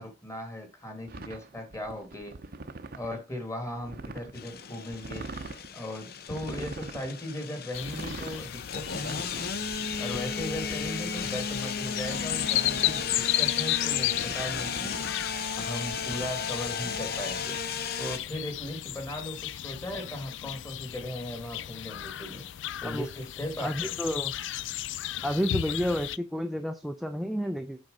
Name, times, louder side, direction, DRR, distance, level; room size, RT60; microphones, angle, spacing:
voice 1, 0.0-2.4 2.9-5.3 5.7-9.5 10.0-15.0 15.6-17.6 18.0-22.5 22.8-23.9, left 1 dB, 15° left, 2.3 m, -37 dB
sound 1, 1.1-3.2 3.6-4.3 4.9-5.7 6.3-7.1 7.8-8.4 8.8-11.3 12.0-13.4 14.0-15.3 15.9-16.3, right 3 dB, 55° right, 0.7 m, -43 dB
sound 2, 4.3-18.2, left 6 dB, 55° left, 0.7 m, -35 dB
sound 3, 7.7-26.2, left 13 dB, 80° left, 0.4 m, -34 dB
voice 2, 23.6-24.3 25.2-27.8, equal, ahead, 0.5 m, -30 dB
7.8 x 4.4 x 5.4 m
head